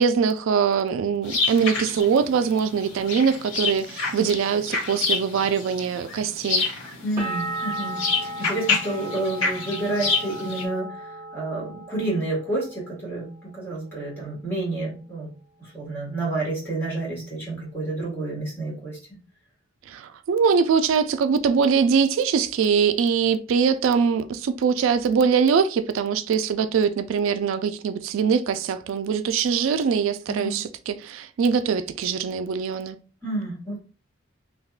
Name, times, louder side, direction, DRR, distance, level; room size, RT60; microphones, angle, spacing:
voice 1, 0.0-6.7 19.9-33.0, right 6 dB, 80° right, 0.3 m, -22 dB
sound 1, 1.2-10.6, left 4 dB, 80° left, 1.3 m, -28 dB
voice 2, 7.0-15.3 15.6-19.0 30.3-30.6 33.2-33.8, right 2 dB, 10° left, 1.6 m, -29 dB
sound 2, 7.2-12.8 13.1-13.8, right 1 dB, 15° right, 1.3 m, -35 dB
3.4 x 2.8 x 2.4 m
head